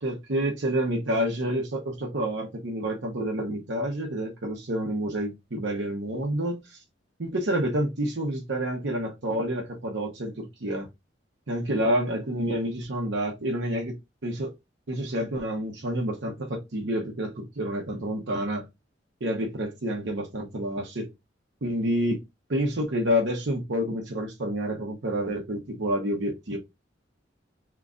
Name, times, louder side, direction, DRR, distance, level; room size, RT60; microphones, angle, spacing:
voice 1, 0.0-6.8 7.2-10.9 11.5-14.0 14.2-14.5 14.9-18.7 19.2-21.1 21.6-22.2 22.5-26.6, equal, 70° right, 0.8 m, -28 dB
3.0 x 2.4 x 3.7 m
head